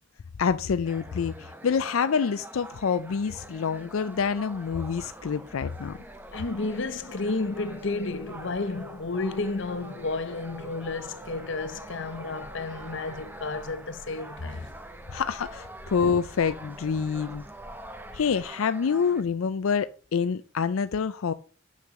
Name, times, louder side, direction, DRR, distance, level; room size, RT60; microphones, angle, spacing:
voice 1, 0.4-6.0 15.1-17.5 18.1-21.3, left 6 dB, 90° left, 0.4 m, -27 dB
sound 1, 0.8-19.2, right 1 dB, 10° right, 0.7 m, -45 dB
sound 2, 3.5-18.5, equal, 10° left, 2.5 m, -53 dB
voice 2, 6.3-14.7, left 3 dB, 60° left, 0.8 m, -32 dB
sound 3, 6.6-13.4, equal, 65° right, 2.3 m, -50 dB
6.7 x 6.5 x 6.3 m
head